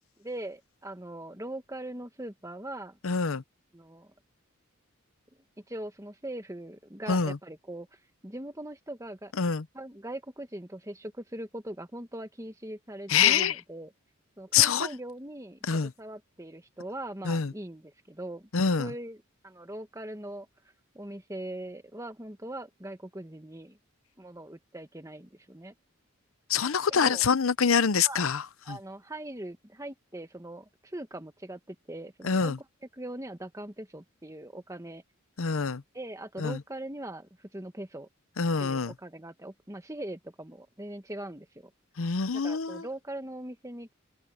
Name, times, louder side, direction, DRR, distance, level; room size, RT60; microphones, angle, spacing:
voice 1, 0.2-3.0 3.7-4.1 5.7-7.9 8.2-13.9 14.4-18.5 18.8-19.2 19.4-20.5 20.9-23.8 24.2-25.7 26.9-27.2 28.0-28.2 28.6-32.6 32.9-35.0 35.6-38.1 38.6-41.7 42.3-43.9, right 1 dB, 15° right, 1.5 m, -41 dB
voice 2, 3.0-3.4 7.1-7.4 9.4-9.6 13.1-13.5 14.5-14.9 15.7-15.9 17.2-17.5 18.5-18.9 26.5-28.8 32.2-32.6 35.4-35.8 36.4-36.6 38.4-38.9 42.0-42.8, left 6 dB, 80° left, 0.7 m, -25 dB
open air
head